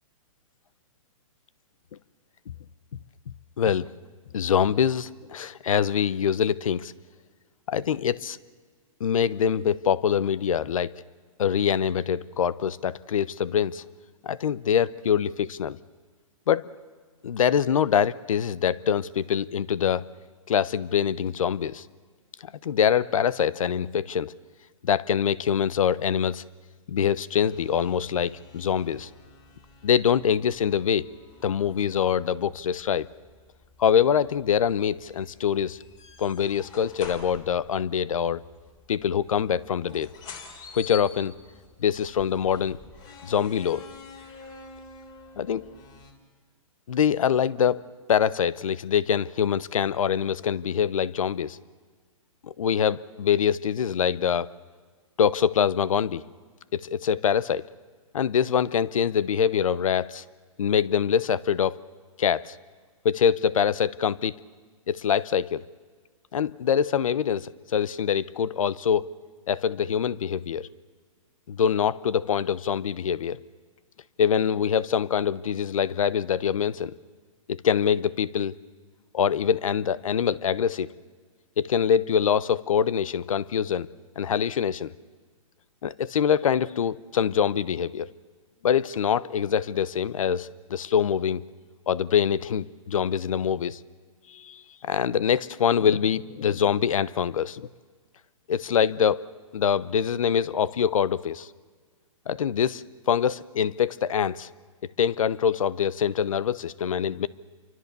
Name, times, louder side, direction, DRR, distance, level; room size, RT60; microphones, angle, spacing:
voice 1, 3.6-3.9 4.3-6.9 7.7-8.4 9.0-10.9 11.4-13.8 14.2-15.8 16.5-16.7 17.2-20.0 20.5-21.8 22.4-24.3 24.8-26.4 26.9-29.1 29.8-31.0 31.4-33.1 33.8-35.8 36.2-38.4 38.9-40.1 40.7-41.3 41.8-42.8 43.2-43.9 45.4-45.7 46.9-47.8 48.1-51.6 52.4-54.5 55.2-56.2 56.7-57.7 58.1-60.2 60.6-61.8 62.2-62.6 63.0-64.4 64.9-65.6 66.3-69.1 69.5-70.7 71.5-73.4 74.2-76.9 77.5-78.5 79.1-80.9 81.6-83.9 84.2-84.9 85.8-88.1 88.6-91.4 91.9-93.8 94.3-97.7 98.5-99.2 99.5-101.5 102.3-104.5 105.0-107.3, left 8 dB, 75° left, 20 dB, 1.0 m, -24 dB
sound 1, 27.4-46.1, left 5 dB, 25° left, 3.3 m, -48 dB
28.5 x 24.5 x 6.9 m, 1.5 s
hypercardioid pair, 145°, 17 cm